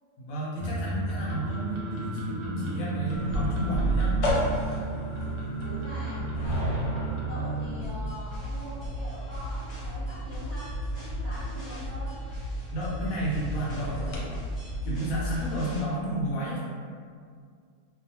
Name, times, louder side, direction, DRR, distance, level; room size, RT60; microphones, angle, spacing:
voice 1, 0.2-4.1 12.7-14.3 14.8-16.6, right 1 dB, 65° left, -7 dB, 0.9 m, -32 dB
sound 1, 0.6-7.8, right 2 dB, 75° right, 1.1 m, -33 dB
sound 2, 3.1-14.3, equal, 85° left, 1.2 m, -33 dB
voice 2, 4.6-5.0 5.6-6.8 7.2-12.1, equal, 5° left, -14 dB, 0.7 m, -43 dB
sound 3, 7.8-15.8, equal, 30° left, 0.9 m, -35 dB
2.6 x 2.3 x 2.8 m, 2.1 s
omnidirectional pair, 1.8 m